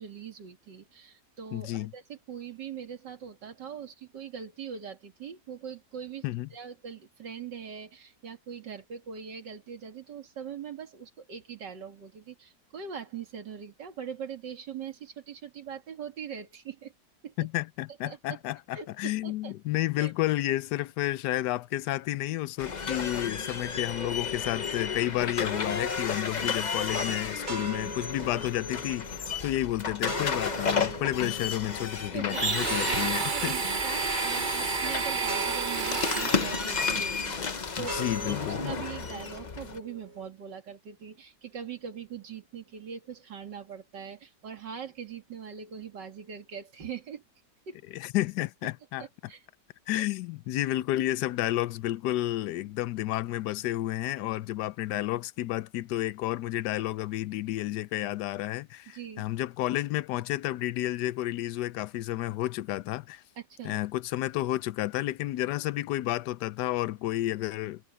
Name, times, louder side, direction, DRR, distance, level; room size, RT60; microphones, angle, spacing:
voice 1, 0.0-6.2 6.5-16.9 17.2-17.3 18.1-18.4 18.7-19.5 20.0-20.1 32.1-47.2 47.7-48.1 49.0-49.4 49.9-50.0 58.9-59.3 63.4-63.8, right 7 dB, 85° right, 2.8 m, -42 dB
voice 2, 1.5-1.9 6.2-6.5 17.4-29.1 29.4-33.5 37.8-38.6 47.9-49.0 49.9-63.2 63.6-67.8, left 15 dB, 75° left, 1.2 m, -31 dB
sound 1, 22.6-39.8, left 5 dB, 35° left, 0.7 m, -33 dB
sound 2, 27.4-40.3, right 1 dB, 55° right, 7.3 m, -42 dB
Domestic sounds home sounds, 32.3-36.7, right 5 dB, 35° right, 0.9 m, -30 dB
omnidirectional pair, 1.8 m